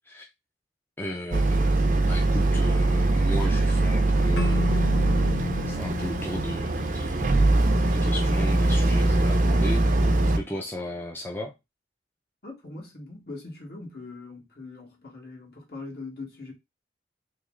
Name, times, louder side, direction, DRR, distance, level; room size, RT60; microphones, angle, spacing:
voice 1, 1.0-4.9 5.7-7.3 7.9-9.8 10.4-11.5, equal, 10° left, 0.5 m, -35 dB
Boat Water vehicle, 1.3-10.4, right 2 dB, 45° right, 0.6 m, -22 dB
Keyboard (musical), 4.4-7.6, left 5 dB, 80° left, 1.4 m, -34 dB
voice 2, 12.4-16.5, left 3 dB, 60° left, 1.6 m, -41 dB
3.2 x 3.1 x 3.7 m
head